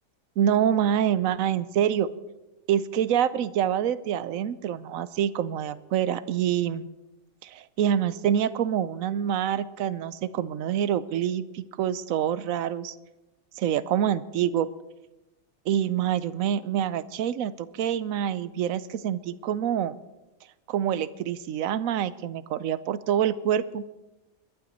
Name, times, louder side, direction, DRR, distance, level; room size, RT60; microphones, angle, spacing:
voice 1, 0.4-2.1 2.7-6.9 7.4-12.9 13.6-14.7 15.7-20.0 20.7-23.8, right 9 dB, 85° right, 16 dB, 1.1 m, -26 dB
22.0 x 11.5 x 4.1 m, 1.0 s
omnidirectional pair, 1.4 m